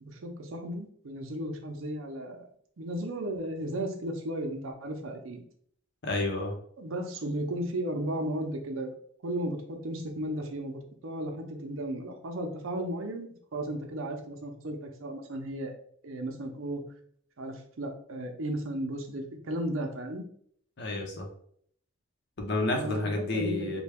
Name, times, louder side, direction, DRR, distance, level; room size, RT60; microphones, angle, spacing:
voice 1, 0.0-2.4 2.8-5.4 6.8-8.9 9.2-15.7 16.0-16.8 17.4-20.2 22.7-23.8, right 1 dB, 85° right, 4 dB, 0.6 m, -35 dB
voice 2, 6.0-6.5 20.8-21.3 22.4-23.8, left 2 dB, 55° left, 2 dB, 0.7 m, -30 dB
3.3 x 2.2 x 3.4 m, 0.63 s
head